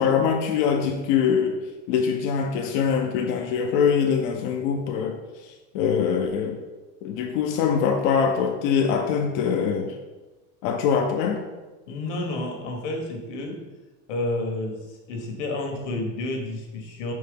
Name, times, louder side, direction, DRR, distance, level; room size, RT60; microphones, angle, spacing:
voice 1, 0.0-1.6 1.9-6.6 7.0-10.0 10.6-11.4, left 7 dB, 40° left, 3 dB, 0.4 m, -23 dB
voice 2, 11.9-13.6 14.1-17.1, left 2 dB, 65° left, 2 dB, 1.4 m, -30 dB
4.7 x 4.1 x 5.1 m, 1.2 s
supercardioid pair, 165°, 38 cm